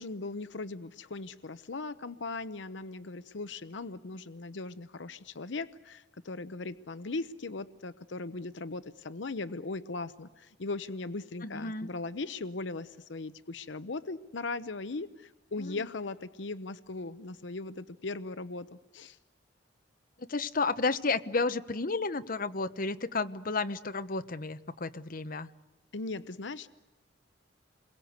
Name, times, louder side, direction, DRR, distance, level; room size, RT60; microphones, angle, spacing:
voice 1, 0.0-19.2 25.9-26.7, left 3 dB, 70° left, 13 dB, 0.8 m, -38 dB
voice 2, 11.4-11.9 15.6-15.8 20.3-25.5, left 3 dB, 50° left, 11 dB, 1.0 m, -32 dB
29.5 x 22.0 x 8.1 m, 1.1 s
head